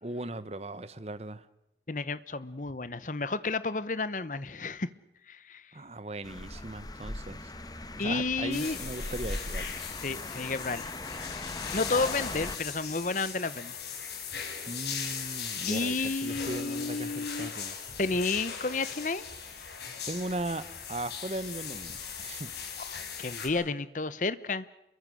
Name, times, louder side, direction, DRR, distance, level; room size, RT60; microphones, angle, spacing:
voice 1, 0.0-1.4 5.7-7.5 8.0-9.7 14.7-17.7 20.1-20.6 20.9-22.5, right 2 dB, 35° right, 14 dB, 1.0 m, -38 dB
voice 2, 1.9-4.9 5.3-5.6 8.0-8.8 10.0-11.5 11.7-13.8 15.7-17.5 18.0-19.2 22.8-24.7, left 3 dB, 45° left, 16 dB, 0.9 m, -32 dB
sound 1, 6.2-12.6, left 2 dB, 20° left, 1.3 m, -39 dB
sound 2, 8.5-23.5, left 6 dB, 70° left, 5.2 m, -39 dB
28.0 x 23.0 x 6.4 m, 0.85 s
head